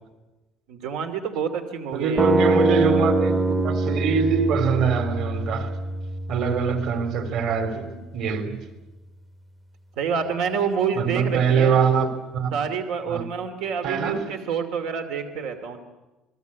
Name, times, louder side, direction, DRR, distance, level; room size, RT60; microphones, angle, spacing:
voice 1, 0.7-2.3 7.7-8.3 10.0-11.8 12.5-15.8, right 6 dB, 85° right, 2.5 m, -28 dB
voice 2, 1.9-5.7 6.3-7.8 8.1-8.6 10.9-12.5 13.1-13.2 13.8-14.1, right 6 dB, 55° right, 3.3 m, -23 dB
sound 1, 2.2-8.2, right 2 dB, 15° right, 0.8 m, -25 dB
28.5 x 21.0 x 8.2 m
cardioid pair, 180°, 0 cm